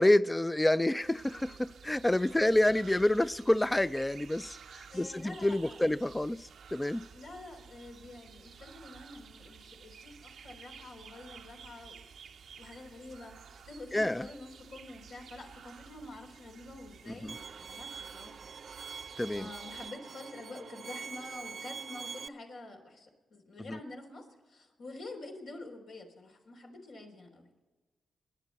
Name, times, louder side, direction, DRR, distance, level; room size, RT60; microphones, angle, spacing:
voice 1, 0.0-7.0 13.9-14.3 17.1-17.4 19.2-19.5 23.7-23.8, left 1 dB, 15° left, 0.4 m, -28 dB
sound 1, 1.0-19.9, right 6 dB, 80° right, 0.8 m, -53 dB
voice 2, 4.9-5.8 7.1-12.1 12.6-18.5 19.3-27.5, left 2 dB, 85° left, 3.8 m, -47 dB
Bowed string instrument, 17.3-22.3, right 6 dB, 60° right, 0.4 m, -44 dB
28.0 x 10.5 x 4.2 m
cardioid pair, 55°, 0 cm